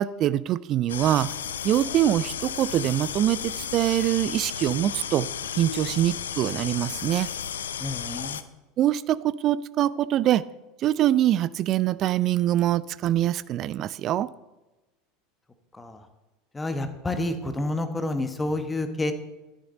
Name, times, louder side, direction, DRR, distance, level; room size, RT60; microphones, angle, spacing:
voice 1, 0.0-1.3 1.6-5.3 5.5-7.3 8.8-10.4 10.8-14.3, right 12 dB, 40° right, 18 dB, 0.4 m, -24 dB
sound 1, 0.9-8.4, left 8 dB, 70° left, 0.5 m, -33 dB
voice 2, 7.8-8.4 15.7-16.1 16.5-19.1, left 2 dB, 15° left, 8 dB, 1.1 m, -29 dB
11.0 x 10.5 x 3.8 m, 1.1 s
figure-of-eight pair, 75°, 0 cm